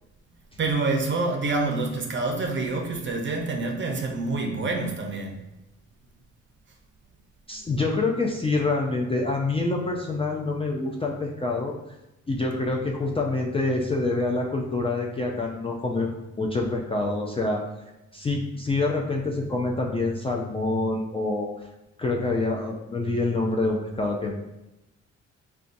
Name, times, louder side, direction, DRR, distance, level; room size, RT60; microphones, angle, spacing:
voice 1, 0.6-5.4, right 3 dB, 40° right, 0.6 m, -27 dB
voice 2, 7.5-11.7 12.3-17.6 18.1-21.5 22.0-24.4, left 2 dB, 20° left, 0.3 m, -26 dB
3.8 x 2.3 x 2.5 m
cardioid pair, 90°, 30 cm